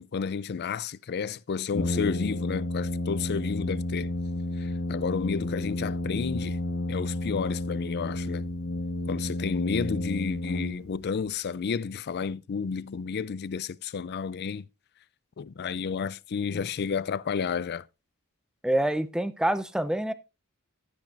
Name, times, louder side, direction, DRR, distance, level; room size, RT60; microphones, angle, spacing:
voice 1, 0.0-4.1 4.6-6.6 6.9-8.5 9.1-14.7 15.4-17.8, left 6 dB, 50° left, 0.4 m, -31 dB
Brass instrument, 1.7-11.2, left 1 dB, 65° left, 1.9 m, -31 dB
voice 2, 18.6-20.1, right 1 dB, 5° right, 0.6 m, -26 dB
14.5 x 8.9 x 2.5 m
head